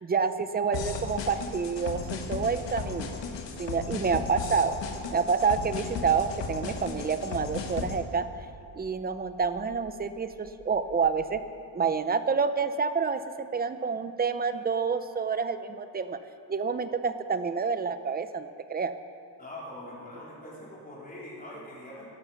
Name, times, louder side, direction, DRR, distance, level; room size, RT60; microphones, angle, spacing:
voice 1, 0.0-3.1 3.6-4.8 5.1-8.3 8.7-11.4 11.7-16.2 16.5-18.9, right 5 dB, 20° right, 11 dB, 0.5 m, -28 dB
sound 1, 0.7-8.0, left 5 dB, 85° left, 1.5 m, -35 dB
sound 2, 3.5-11.4, right 5 dB, 60° right, 2.3 m, -53 dB
voice 2, 19.4-22.0, left 1 dB, 20° left, -6 dB, 4.0 m, -43 dB
15.0 x 12.0 x 5.7 m, 2.7 s
wide cardioid pair, 155°, 42 cm